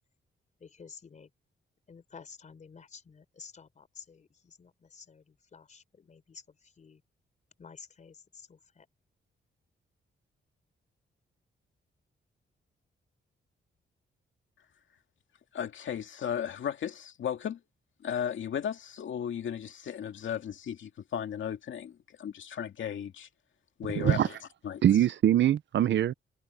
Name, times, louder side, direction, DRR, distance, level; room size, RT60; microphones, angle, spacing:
voice 1, 0.6-1.3 1.9-7.0 7.6-8.9, left 6 dB, 40° left, 4.1 m, -51 dB
voice 2, 15.5-17.6 18.0-23.3 23.8-24.4 24.6-24.8, left 8 dB, 75° left, 2.2 m, -35 dB
voice 3, 24.0-24.3 24.8-26.1, right 11 dB, 65° right, 0.6 m, -23 dB
wide cardioid pair, 175°, 20 cm